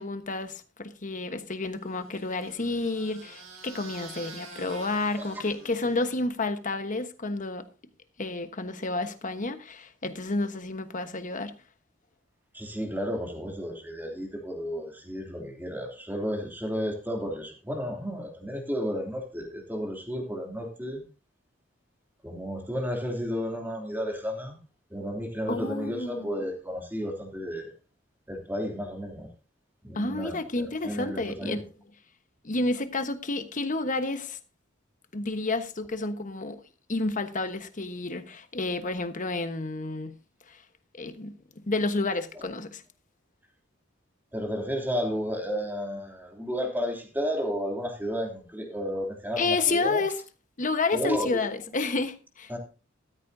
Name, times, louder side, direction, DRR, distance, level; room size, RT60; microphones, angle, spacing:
voice 1, 0.0-7.7 8.2-11.5 25.5-26.4 29.9-31.6 32.4-34.4 35.1-36.6 36.9-40.2 40.5-40.6 41.0-41.3 41.7-42.8 49.4-50.2 50.6-52.5, left 3 dB, 40° left, 1.2 m, -30 dB
sound 1, 1.9-6.4, right 4 dB, 90° right, 4.4 m, -47 dB
voice 2, 12.5-21.0 22.2-24.6 24.9-27.7 28.3-29.3 29.8-30.4 30.8-31.6 44.3-50.0 50.9-51.4 52.5-52.6, equal, 10° right, 2.9 m, -32 dB
13.5 x 13.5 x 2.7 m
head